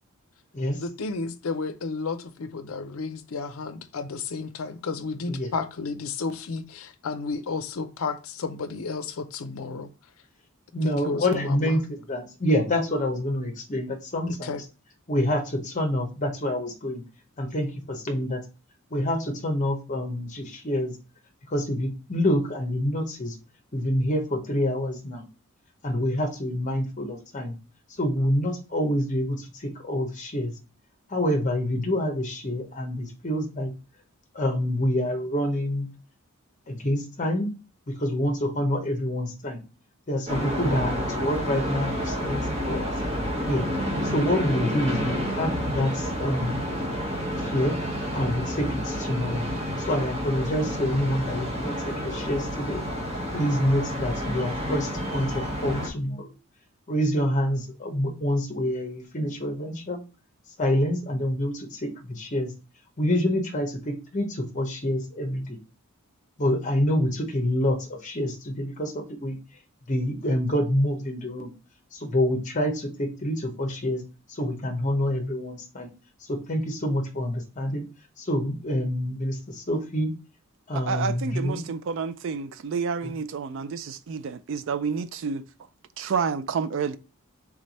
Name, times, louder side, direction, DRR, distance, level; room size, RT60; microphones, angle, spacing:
voice 1, 0.7-9.9 10.8-11.8 14.3-14.6, left 4 dB, 70° left, 0.5 m, -32 dB
voice 2, 10.7-14.6 15.1-17.0 17.4-18.4 18.9-20.9 21.5-23.4 23.7-25.2 25.8-27.5 28.0-30.5 31.1-33.7 34.3-35.9 36.7-37.5 37.9-39.6 40.1-43.0 43.5-43.7 44.0-46.6 47.4-47.8 48.1-49.5 49.8-52.8 53.3-56.3 56.9-60.0 60.6-62.5 63.0-65.6 66.4-69.4 69.9-71.5 71.9-74.0 74.3-75.9 76.3-77.8 78.2-80.1 80.7-81.6 83.0-83.1, left 1 dB, 35° left, 0.8 m, -27 dB
sound 1, 40.3-55.9, equal, 30° right, 1.0 m, -29 dB
voice 3, 80.7-85.5 86.0-87.0, right 5 dB, 55° right, 0.3 m, -29 dB
3.6 x 3.3 x 3.9 m
head